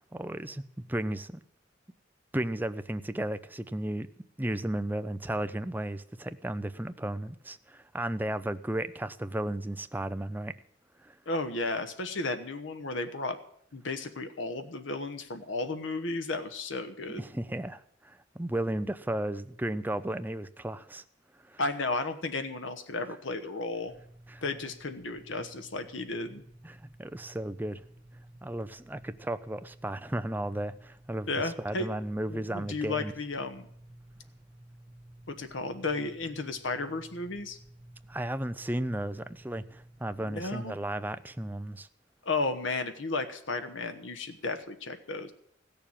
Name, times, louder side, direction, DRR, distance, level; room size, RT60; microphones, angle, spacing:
voice 1, 0.1-0.6 0.9-1.4 2.3-4.1 4.4-10.5 11.0-11.2 17.1-21.0 21.4-21.6 24.3-24.4 26.6-27.8 28.4-33.1 38.1-41.9, right 1 dB, 10° right, 11 dB, 0.5 m, -34 dB
voice 2, 11.3-13.4 13.7-17.2 21.6-23.9 24.4-26.4 31.3-31.9 32.3-33.7 35.3-37.6 40.2-40.8 42.2-45.3, left 3 dB, 80° left, 8 dB, 1.2 m, -33 dB
sound 1, 23.8-40.3, right 1 dB, 25° right, 1.8 m, -54 dB
15.5 x 6.9 x 8.8 m, 0.67 s
head